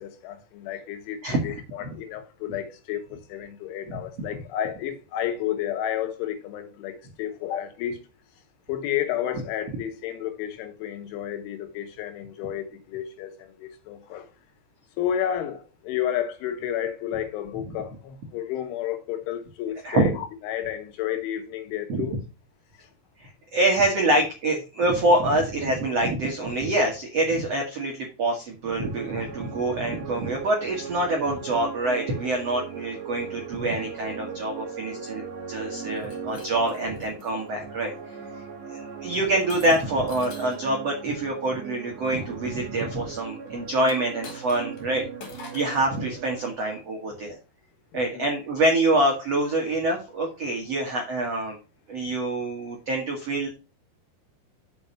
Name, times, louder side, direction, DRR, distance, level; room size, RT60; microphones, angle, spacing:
voice 1, 0.0-8.0 8.7-14.3 15.0-22.2 24.0-24.1 43.3-43.4 47.9-48.3, left 10 dB, 85° left, 3.7 m, -31 dB
voice 2, 1.2-1.5 19.8-20.1 21.9-22.0 23.2-37.9 38.7-45.1 45.5-47.4 47.9-51.6 51.9-53.5, right 1 dB, 75° right, 1.4 m, -25 dB
sound 1, 28.8-46.5, right 6 dB, 55° right, 2.0 m, -39 dB
Shatter, 35.9-37.3 38.0-38.3 39.5-40.7 43.8-44.8 45.2-45.8, left 3 dB, 50° left, 3.0 m, -45 dB
6.9 x 5.7 x 5.6 m
omnidirectional pair, 5.4 m